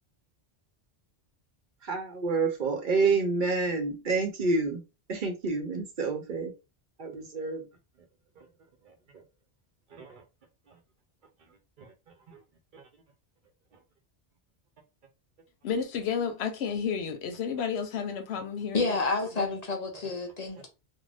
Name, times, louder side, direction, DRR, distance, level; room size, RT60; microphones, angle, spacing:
voice 1, 1.8-4.8 5.1-6.5 7.0-7.7 8.4-8.5 9.9-10.2 11.8-11.9 12.3-12.4 12.7-12.8, right 4 dB, 55° right, 0.7 m, -29 dB
voice 2, 15.6-19.0 19.3-19.5, left 6 dB, 80° left, 0.9 m, -31 dB
voice 3, 18.7-20.7, left 3 dB, 45° left, 0.6 m, -29 dB
2.5 x 2.1 x 3.3 m
omnidirectional pair, 1.1 m